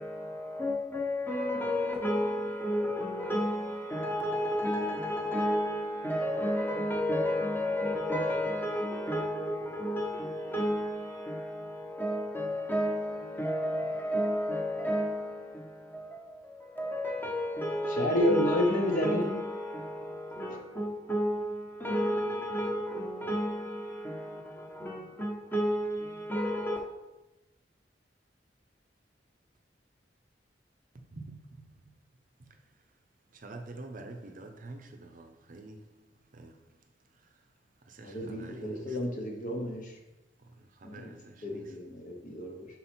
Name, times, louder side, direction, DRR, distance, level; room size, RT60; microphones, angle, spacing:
voice 1, 0.0-26.8, equal, 10° left, 1.1 m, -32 dB
voice 2, 17.9-19.4 20.5-20.6 38.0-39.9 40.8-41.1 41.4-42.7, left 1 dB, 45° left, 1.1 m, -30 dB
voice 3, 33.4-35.8 36.3-36.5 38.0-39.0 40.8-41.6, right 2 dB, 50° right, 0.6 m, -46 dB
5.7 x 4.2 x 4.4 m
head